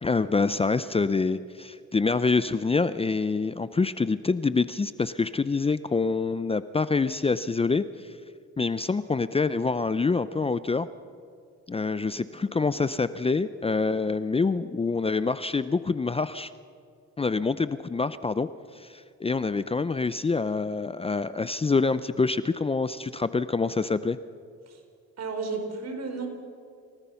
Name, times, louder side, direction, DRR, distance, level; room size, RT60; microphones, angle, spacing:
voice 1, 0.0-8.1 8.6-10.9 11.7-16.5 17.2-18.5 18.7-24.2, left 4 dB, 20° left, 14 dB, 0.6 m, -26 dB
voice 2, 25.2-26.3, right 4 dB, 60° right, 4 dB, 4.8 m, -33 dB
29.0 x 18.5 x 5.8 m, 2.2 s
cardioid pair, 90°, 30 cm